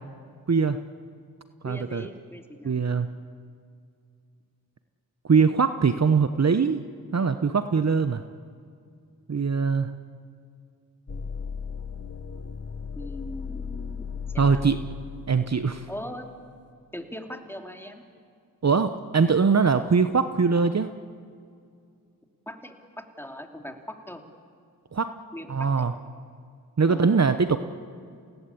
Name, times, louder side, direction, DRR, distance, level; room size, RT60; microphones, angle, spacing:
voice 1, 0.5-0.8 1.6-2.1 2.6-3.1 5.2-6.8 7.1-8.2 9.3-9.9 14.4-14.8 15.3-15.8 18.6-20.9 24.9-25.1 25.5-25.9 26.8-27.6, right 5 dB, 45° right, 10 dB, 1.0 m, -22 dB
voice 2, 1.6-2.8 13.0-14.1 14.3-14.6 15.9-16.3 16.9-18.0 22.5-24.2 25.3-25.7 26.9-27.2, equal, 5° left, 3 dB, 3.1 m, -40 dB
sound 1, 11.1-16.5, left 6 dB, 40° left, 1.5 m, -37 dB
28.5 x 18.0 x 8.5 m, 2.2 s
cardioid pair, 45°, 37 cm